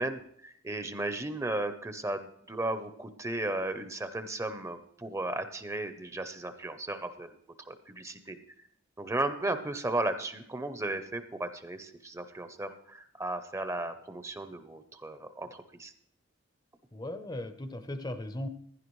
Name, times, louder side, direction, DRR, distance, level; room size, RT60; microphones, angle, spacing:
voice 1, 0.0-7.3 7.7-8.4 9.0-15.9, right 2 dB, 15° right, 10 dB, 0.8 m, -35 dB
voice 2, 16.9-18.5, left 1 dB, 20° left, 10 dB, 0.7 m, -37 dB
16.0 x 10.5 x 3.2 m, 0.68 s
head